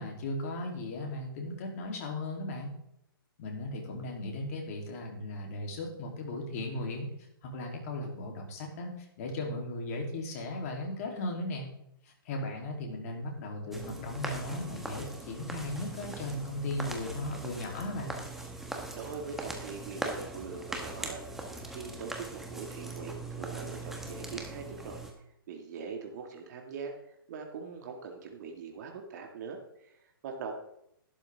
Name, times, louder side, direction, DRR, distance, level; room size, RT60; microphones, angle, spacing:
voice 1, 0.0-2.7 3.4-7.1 7.4-11.7 12.0-18.1, left 1 dB, 40° left, 1 dB, 3.2 m, -37 dB
sound 1, 13.7-25.1, right 2 dB, ahead, 1.4 m, -41 dB
voice 2, 18.9-25.0 25.5-30.5, right 5 dB, 50° right, 2 dB, 2.1 m, -42 dB
12.0 x 10.5 x 3.6 m, 0.77 s
hypercardioid pair, 135°, 12 cm